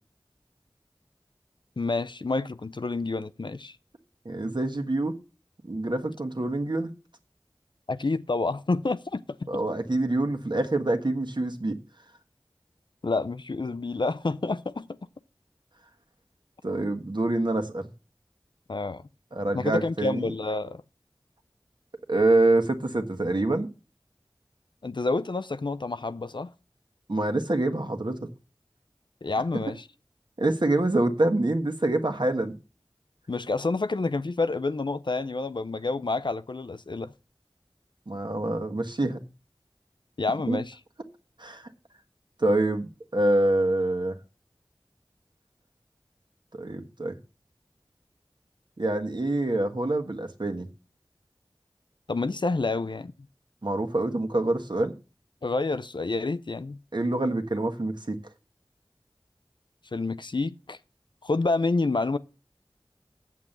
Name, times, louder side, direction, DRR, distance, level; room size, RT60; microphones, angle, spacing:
voice 1, 1.8-3.8 7.9-9.5 13.0-14.9 18.7-19.0 19.5-20.8 24.8-26.5 29.2-29.8 33.3-37.1 40.2-40.8 52.1-53.1 55.4-56.8 59.9-60.8 61.2-62.2, left 3 dB, 60° left, 0.5 m, -28 dB
voice 2, 4.2-5.2 5.6-6.9 9.5-11.8 16.6-17.9 19.3-20.2 22.1-23.7 27.1-28.3 30.4-32.6 38.1-39.2 40.5-40.6 41.4-41.7 42.4-44.2 46.5-47.2 48.8-50.7 53.6-54.9 56.9-58.2, right 2 dB, 60° right, 1.4 m, -26 dB
8.4 x 7.5 x 6.6 m
wide cardioid pair, 40°, 9 cm